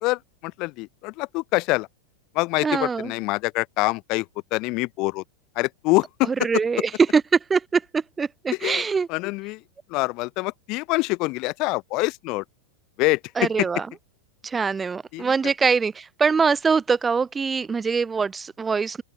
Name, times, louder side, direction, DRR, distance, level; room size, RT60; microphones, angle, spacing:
voice 1, 0.0-1.9 2.3-4.3 4.5-5.2 5.6-6.3 8.6-8.8 9.1-9.6 9.9-12.4 13.0-13.7 15.1-15.3, left 24 dB, 40° left, 0.7 m, -25 dB
voice 2, 2.6-3.1 6.2-9.1 13.4-13.9 14.4-19.0, right 5 dB, 15° right, 0.5 m, -23 dB
open air
figure-of-eight pair, 90°, 0 cm